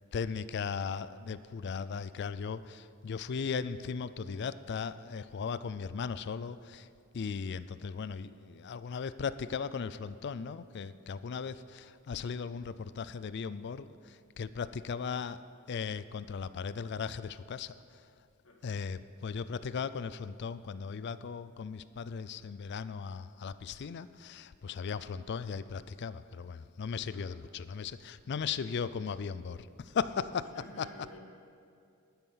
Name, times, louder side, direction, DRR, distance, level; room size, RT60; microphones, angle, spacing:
voice 1, 0.1-6.9 7.1-18.1 18.6-30.9, left 6 dB, 50° left, 15 dB, 0.4 m, -37 dB
voice 2, 18.4-18.9 27.1-27.4 30.5-31.2, left 1 dB, 70° left, 0 dB, 2.0 m, -53 dB
11.5 x 10.0 x 5.7 m, 2.4 s
head